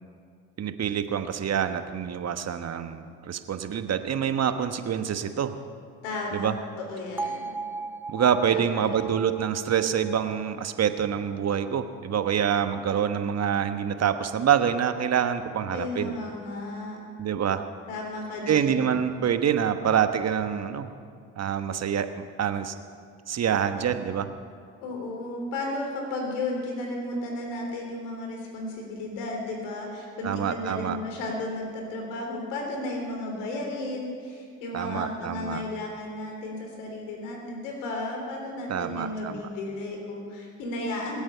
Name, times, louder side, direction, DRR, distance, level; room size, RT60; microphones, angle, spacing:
voice 1, 0.6-5.5 6.3-6.5 8.1-16.1 17.2-17.6 18.5-20.9 21.4-22.1 22.4-22.7 23.3-24.3 30.2-31.0 34.7-35.6 38.7-39.4, right 8 dB, 40° right, 9 dB, 1.2 m, -26 dB
voice 2, 6.0-6.5 6.8-7.6 8.5-8.9 15.7-17.0 17.9-18.7 24.8-41.2, left 2 dB, 75° left, 1 dB, 3.6 m, -34 dB
Bell, 7.2-11.2, right 3 dB, 5° right, 0.4 m, -38 dB
25.5 x 8.7 x 5.7 m, 2.2 s
hypercardioid pair, 55°, 38 cm